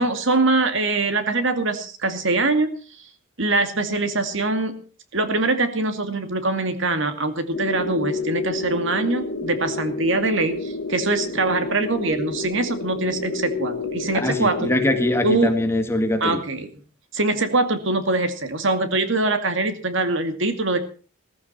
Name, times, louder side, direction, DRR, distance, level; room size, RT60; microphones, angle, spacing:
voice 1, 0.0-2.7 3.4-4.8 5.1-14.7 15.2-15.5 16.2-16.7 17.1-20.8, right 2 dB, 65° right, 8 dB, 2.4 m, -23 dB
sound 1, 7.5-15.4, left 3 dB, 75° left, 1.6 m, -29 dB
voice 2, 14.1-16.4, left 1 dB, 10° left, 6 dB, 2.0 m, -23 dB
16.5 x 15.0 x 4.3 m, 0.39 s
head